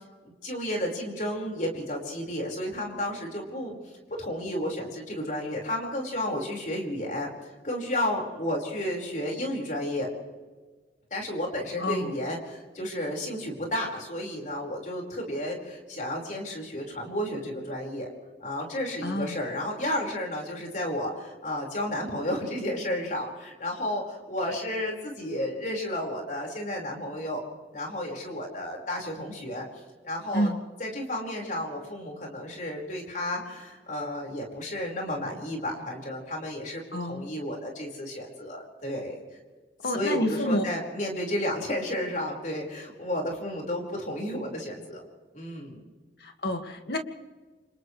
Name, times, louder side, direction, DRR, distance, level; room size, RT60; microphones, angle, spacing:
voice 1, 0.2-3.8 4.2-10.1 11.1-18.1 18.4-27.4 27.7-29.7 30.0-30.5 30.8-39.2 39.8-45.0 45.3-45.8, left 1 dB, 45° left, 0 dB, 5.2 m, -32 dB
voice 2, 11.8-12.1 19.0-19.4 30.3-30.6 36.9-37.3 39.8-40.6 46.2-47.0, left 1 dB, 60° left, 5 dB, 2.1 m, -28 dB
29.5 x 27.0 x 3.3 m, 1.3 s
head